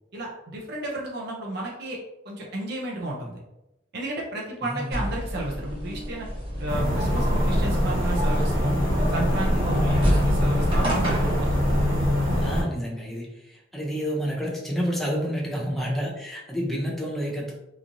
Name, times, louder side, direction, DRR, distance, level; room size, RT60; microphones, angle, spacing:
voice 1, 0.1-2.0 2.2-3.4 3.9-6.3 6.6-8.7 9.1-11.6, right 2 dB, 55° right, -3 dB, 0.5 m, -32 dB
voice 2, 4.7-5.0 12.4-17.5, equal, ahead, -3 dB, 0.5 m, -29 dB
sound 1, 4.9-11.5, equal, 25° right, 1.1 m, -30 dB
sound 2, 6.7-12.6, equal, 80° right, 1.3 m, -23 dB
3.0 x 2.3 x 2.5 m, 0.95 s
head